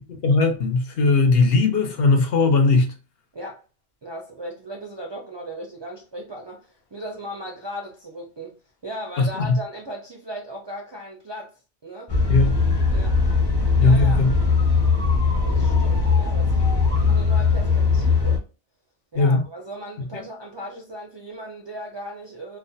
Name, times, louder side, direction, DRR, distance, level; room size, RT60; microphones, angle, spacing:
voice 1, 0.2-2.9 9.2-9.6 12.3-12.6 13.8-14.3 19.1-19.4, left 3 dB, 70° left, 0.8 m, -18 dB
voice 2, 4.0-8.6 8.8-12.1 12.9-13.2 13.8-14.4 15.4-18.4 19.1-22.6, equal, 45° right, 0.3 m, -37 dB
sound 1, 12.1-18.4, left 4 dB, 30° left, 0.6 m, -20 dB
2.4 x 2.0 x 2.6 m
omnidirectional pair, 1.1 m